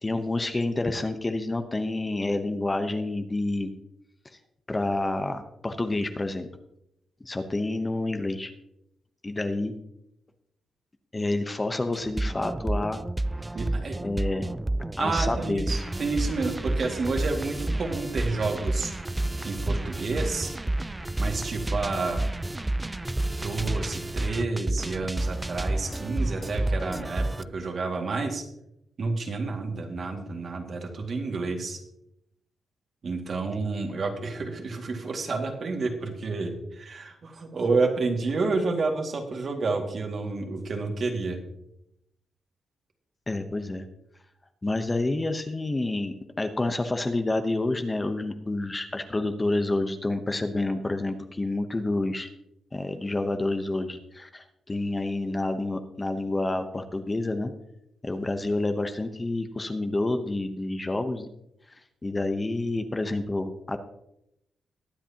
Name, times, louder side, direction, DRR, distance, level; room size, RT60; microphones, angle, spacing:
voice 1, 0.0-3.7 4.7-6.5 7.2-8.5 9.2-9.7 11.1-13.0 14.0-14.5 15.0-15.7 43.3-43.8 44.6-52.3 52.7-57.5 58.0-61.3 62.0-63.8, left 2 dB, 20° left, 7 dB, 0.9 m, -28 dB
sound 1, 11.9-27.4, right 1 dB, 15° right, 0.3 m, -30 dB
voice 2, 13.5-14.0 15.0-18.9 19.4-20.5 21.2-22.2 23.4-28.4 29.0-31.8 33.0-41.4, right 3 dB, 50° right, 3 dB, 2.1 m, -30 dB
21.5 x 8.0 x 2.9 m, 0.81 s
cardioid pair, 105°, 0 cm